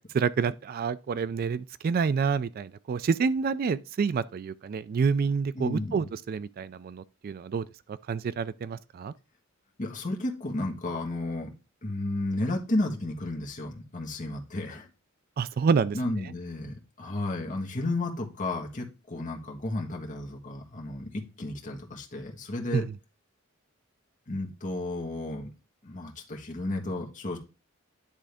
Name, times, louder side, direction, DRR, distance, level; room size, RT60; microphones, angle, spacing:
voice 1, 0.1-9.1 15.4-16.0 22.7-22.9, right 5 dB, 45° right, 0.3 m, -28 dB
voice 2, 5.5-6.0 9.8-11.5 11.8-14.9 15.9-22.8 24.3-25.5 25.8-27.4, left 2 dB, 40° left, 1.4 m, -33 dB
10.0 x 3.6 x 3.4 m
head